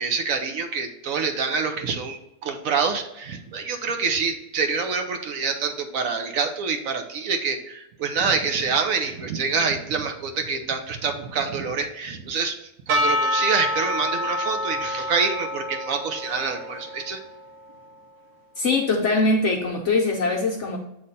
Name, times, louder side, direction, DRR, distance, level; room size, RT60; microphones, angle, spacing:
voice 1, 0.0-12.6 12.9-17.2, right 5 dB, 65° right, 6 dB, 1.0 m, -26 dB
Percussion / Church bell, 12.9-17.9, left 1 dB, 80° right, 1.6 m, -27 dB
voice 2, 18.6-20.8, left 3 dB, 55° left, 0 dB, 0.9 m, -22 dB
7.7 x 3.2 x 4.0 m, 0.88 s
omnidirectional pair, 1.7 m